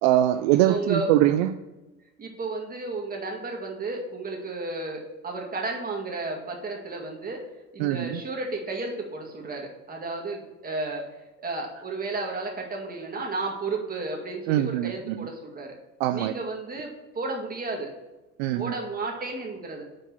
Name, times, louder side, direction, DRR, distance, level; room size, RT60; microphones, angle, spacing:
voice 1, 0.0-1.5 7.8-8.2 14.5-15.3 16.0-16.3 18.4-18.7, right 13 dB, 70° right, 9 dB, 0.5 m, -23 dB
voice 2, 0.6-1.1 2.2-7.5 7.7-11.0 11.4-15.7 16.1-17.9 18.5-19.8, right 3 dB, 25° right, 0 dB, 2.1 m, -33 dB
6.1 x 4.4 x 5.9 m, 1.1 s
hypercardioid pair, 85°, 34 cm